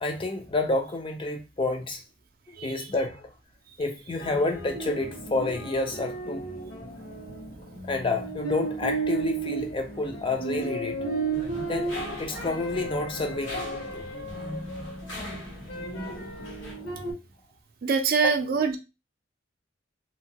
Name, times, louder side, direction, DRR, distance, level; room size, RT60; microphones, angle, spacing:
voice 1, 0.0-2.0 2.5-3.3 3.8-6.5 7.9-11.0 11.7-11.9 12.2-13.6 13.9-14.1 18.2-18.3, left 2 dB, 30° left, 0.4 m, -29 dB
voice 2, 2.6-2.9 17.8-18.8, right 5 dB, 55° right, 0.4 m, -24 dB
sound 1, 4.2-17.1, right 3 dB, 65° left, 1.4 m, -34 dB
sound 2, 11.3-16.7, left 1 dB, 90° left, 1.6 m, -39 dB
2.8 x 2.2 x 2.7 m
head